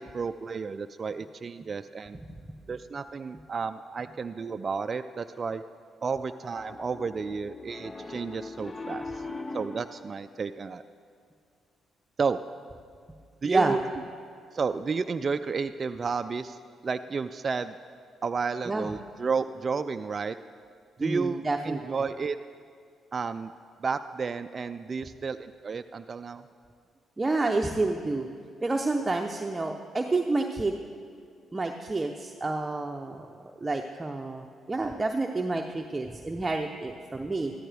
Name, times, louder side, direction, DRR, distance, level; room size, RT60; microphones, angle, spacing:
voice 1, 0.0-2.2 2.7-5.6 6.0-9.2 9.5-10.8 12.2-12.4 13.4-13.8 14.5-17.8 18.2-20.4 21.0-22.4 23.1-23.5 23.8-26.5, right 5 dB, 45° right, 8 dB, 0.4 m, -32 dB
Piano, 6.6-10.0, left 3 dB, 35° left, 0.8 m, -40 dB
voice 2, 13.4-13.8 18.7-18.9 21.0-21.8 27.2-28.3 28.6-30.8 31.5-37.5, right 2 dB, 25° right, 2 dB, 0.7 m, -29 dB
14.0 x 13.5 x 3.5 m, 2.3 s
hypercardioid pair, 55°, 0 cm